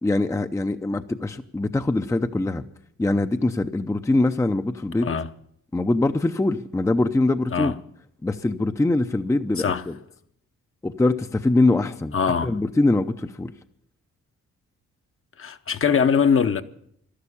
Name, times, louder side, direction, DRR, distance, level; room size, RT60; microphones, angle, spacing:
voice 1, 0.0-2.6 3.0-5.1 5.7-7.7 8.2-9.9 10.8-12.1 12.4-13.5, left 2 dB, 10° left, 0.6 m, -23 dB
voice 2, 12.1-12.6 15.4-16.6, left 6 dB, 40° left, 0.9 m, -22 dB
12.5 x 11.5 x 8.5 m
cardioid pair, 90°, 32 cm